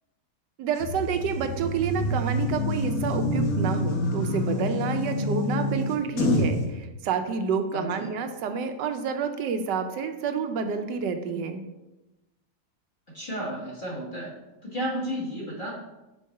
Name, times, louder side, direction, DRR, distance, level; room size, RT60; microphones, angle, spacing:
voice 1, 0.6-11.6, right 6 dB, 85° right, 6 dB, 1.2 m, -29 dB
sound 1, 0.8-6.6, left 1 dB, 60° left, 1.2 m, -27 dB
voice 2, 7.7-8.1 13.1-14.3 14.6-15.7, equal, 30° left, -4 dB, 1.7 m, -32 dB
4.6 x 4.5 x 5.4 m, 1.0 s
omnidirectional pair, 1.8 m